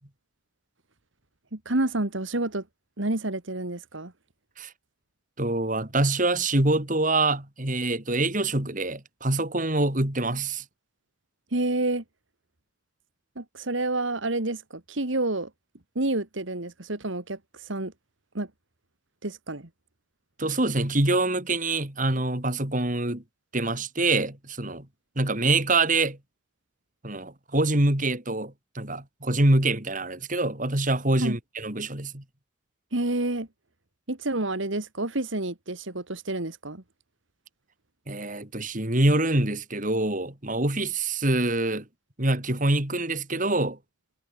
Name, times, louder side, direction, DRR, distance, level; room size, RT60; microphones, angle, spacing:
voice 1, 1.5-2.6 3.0-4.1 11.5-12.0 13.4-15.5 16.0-17.9 18.3-18.5 19.2-19.7 31.2-31.4 32.9-33.5 34.1-36.8, right 2 dB, 70° right, 2.2 m, -29 dB
voice 2, 5.4-10.6 20.4-23.2 23.5-24.9 25.1-26.2 27.0-32.2 38.1-41.8 42.2-43.8, right 2 dB, 40° right, 3.3 m, -25 dB
head